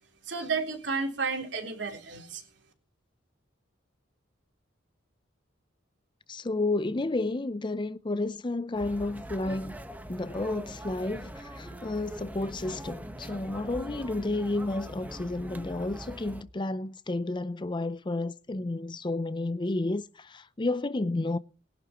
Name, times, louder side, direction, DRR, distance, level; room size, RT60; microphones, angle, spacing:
voice 1, 0.2-2.4, right 4 dB, 65° right, 3.7 m, -32 dB
voice 2, 6.3-9.8 10.1-21.4, left 2 dB, 25° left, 0.5 m, -31 dB
sound 1, 8.7-16.4, equal, 10° right, 1.2 m, -42 dB
21.5 x 11.0 x 3.0 m
head